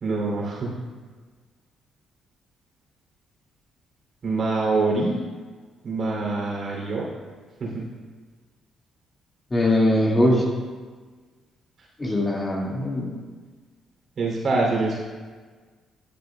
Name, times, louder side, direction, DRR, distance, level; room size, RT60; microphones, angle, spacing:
voice 1, 0.0-0.7 4.2-5.2 5.8-7.0 7.6-7.8 14.2-15.0, right 3 dB, 55° right, -3 dB, 3.0 m, -25 dB
voice 2, 9.5-10.5 12.0-13.2, left 1 dB, 25° left, -3 dB, 2.0 m, -21 dB
12.5 x 8.7 x 2.3 m, 1.4 s
cardioid pair, 90°, 0 cm